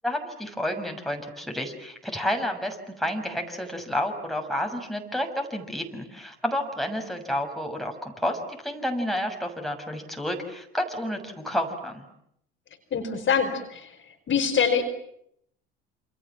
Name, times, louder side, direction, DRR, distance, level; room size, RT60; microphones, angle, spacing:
voice 1, 0.0-12.0, left 1 dB, ahead, 3 dB, 6.6 m, -30 dB
voice 2, 12.9-14.0 14.3-14.8, left 6 dB, 40° left, 5 dB, 4.9 m, -24 dB
28.0 x 28.0 x 7.5 m, 0.74 s
hypercardioid pair, 70°, 30 cm